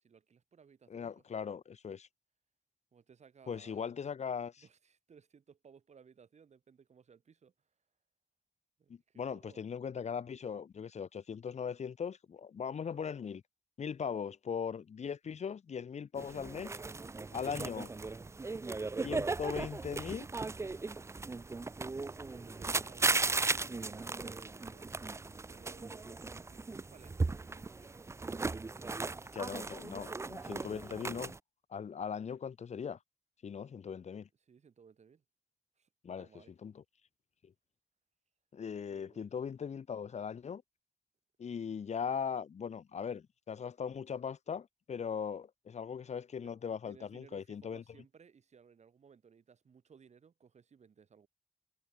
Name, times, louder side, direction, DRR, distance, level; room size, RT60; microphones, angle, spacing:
voice 1, 0.0-1.5 2.9-3.9 4.6-7.5 8.8-9.6 22.0-24.9 25.4-28.1 34.5-35.2 35.8-35.9 36.2-36.5 38.9-39.3 46.4-46.6 46.9-51.3, right 6 dB, 85° right, 5.9 m, -61 dB
voice 2, 0.9-2.1 3.5-4.6 8.9-13.4 13.8-16.8 17.3-17.9 19.0-20.3 29.3-31.3 31.7-33.0 33.4-34.3 36.0-36.8 37.4-37.5 38.5-40.6 41.4-47.8, left 7 dB, 80° left, 1.4 m, -39 dB
sound 1, 16.2-31.4, right 3 dB, 25° right, 0.5 m, -37 dB
wide cardioid pair, 135°, 11 cm